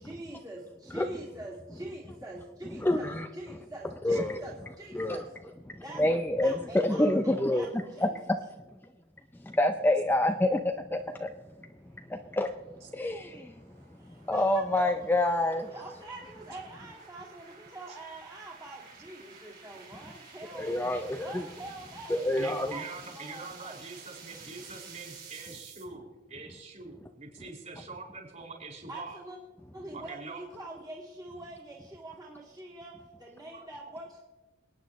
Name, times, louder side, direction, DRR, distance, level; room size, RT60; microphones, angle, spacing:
voice 1, 0.0-5.3 5.8-6.0 6.3-8.4 14.0-15.0 15.7-20.8 21.1-23.8 28.9-29.4 29.7-34.2, right 2 dB, 20° right, -5 dB, 2.3 m, -44 dB
voice 2, 2.8-3.3 4.0-4.4 4.9-5.2 5.7-7.7 8.0-8.4 9.4-11.3 12.1-12.5 12.9-13.5 14.3-15.7 20.5-21.4 22.1-22.7, left 1 dB, 10° left, 6 dB, 0.4 m, -27 dB
sound 1, 11.9-25.8, right 5 dB, 55° right, 5.2 m, -52 dB
voice 3, 22.4-29.2 29.9-30.4 33.5-33.7, right 3 dB, 40° right, -2 dB, 5.1 m, -44 dB
27.5 x 9.5 x 3.1 m, 1.2 s
head